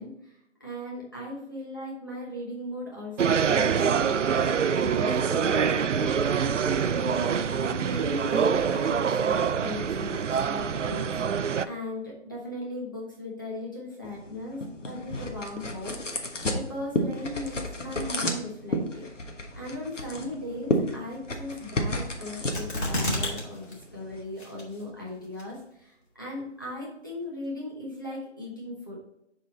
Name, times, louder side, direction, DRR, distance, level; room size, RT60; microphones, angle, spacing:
voice 1, 0.0-19.1 19.5-29.0, left 1 dB, 15° left, -5 dB, 1.0 m, -38 dB
sound 1, 3.2-11.7, right 7 dB, 85° right, 0.5 m, -25 dB
sound 2, 14.0-24.2, left 1 dB, 85° left, 1.4 m, -32 dB
sound 3, 22.5-23.4 23.7-23.8 24.4-24.9 25.4-25.5, left 1 dB, 65° left, 2.4 m, -28 dB
7.4 x 4.3 x 4.0 m, 0.81 s
figure-of-eight pair, 170°, 36 cm